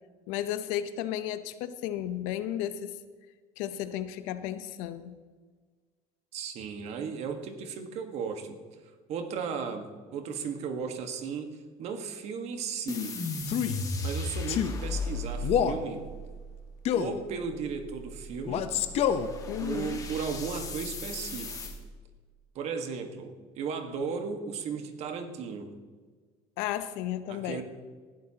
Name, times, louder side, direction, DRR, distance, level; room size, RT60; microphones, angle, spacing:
voice 1, 0.3-3.0 3.6-5.2 19.5-20.0 26.6-27.6, left 11 dB, 80° left, 12 dB, 0.9 m, -33 dB
voice 2, 6.3-8.6 9.1-13.2 14.0-16.1 16.9-18.7 19.6-21.7 22.6-25.8 27.3-27.6, right 6 dB, 55° right, 6 dB, 1.6 m, -35 dB
sound 1, 12.9-21.8, left 2 dB, 25° left, 1.7 m, -37 dB
Male speech man speaking, 13.4-13.8 14.5-14.8 15.4-15.8 16.9-17.2 18.5-19.3, left 9 dB, 50° left, 0.9 m, -27 dB
19.5 x 11.5 x 2.9 m, 1.5 s
cardioid pair, 125°, 13 cm